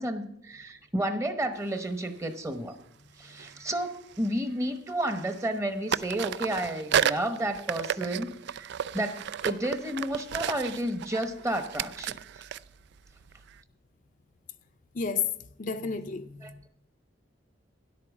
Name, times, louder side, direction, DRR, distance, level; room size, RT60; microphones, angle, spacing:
voice 1, 0.0-2.8 3.2-12.2 16.4-16.5, right 1 dB, 15° right, 1.0 m, -31 dB
sound 1, 1.7-1.9 3.3-4.6 4.9-5.6 5.9-13.6, right 9 dB, 65° right, 0.3 m, -33 dB
voice 2, 14.9-15.3 15.6-16.7, left 6 dB, 45° left, 0.6 m, -31 dB
10.5 x 8.4 x 7.1 m
head